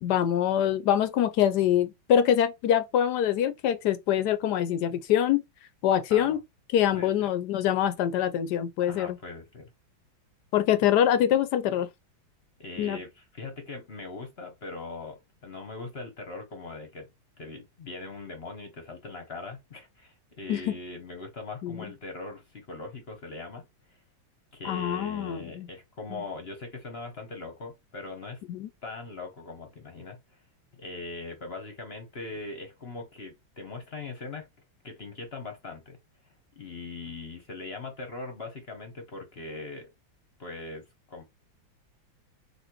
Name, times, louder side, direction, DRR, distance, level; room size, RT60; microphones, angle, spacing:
voice 1, 0.0-5.4 5.8-6.4 6.7-9.2 10.5-11.9 12.8-13.0 20.5-20.7 21.6-21.8 24.6-25.7 26.1-26.2 28.5-28.7, left 10 dB, 75° left, 1.0 m, -24 dB
voice 2, 6.9-7.3 8.8-9.7 12.6-17.1 17.4-24.0 24.5-28.4 28.8-30.4 30.7-34.5 34.8-36.0 36.5-39.9 40.4-41.2, left 3 dB, 45° left, 0.8 m, -40 dB
4.2 x 2.8 x 4.4 m
omnidirectional pair, 2.2 m